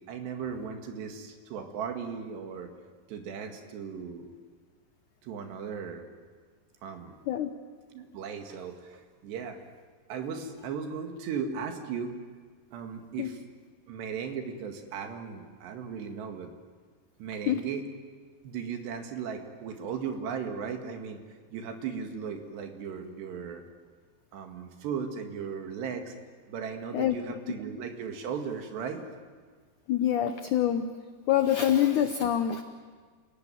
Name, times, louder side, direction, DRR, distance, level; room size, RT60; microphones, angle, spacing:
voice 1, 0.0-2.7 3.1-4.3 5.2-6.0 6.8-7.1 7.9-9.6 10.1-12.1 12.7-13.4 13.9-16.5 17.2-17.8 18.4-21.2 21.5-23.6 24.3-26.2 26.5-29.0, right 6 dB, 80° right, 5 dB, 4.1 m, -36 dB
voice 2, 29.9-30.9 31.3-32.6, left 10 dB, 80° left, 8 dB, 1.8 m, -25 dB
28.5 x 17.0 x 9.1 m, 1.6 s
omnidirectional pair, 4.9 m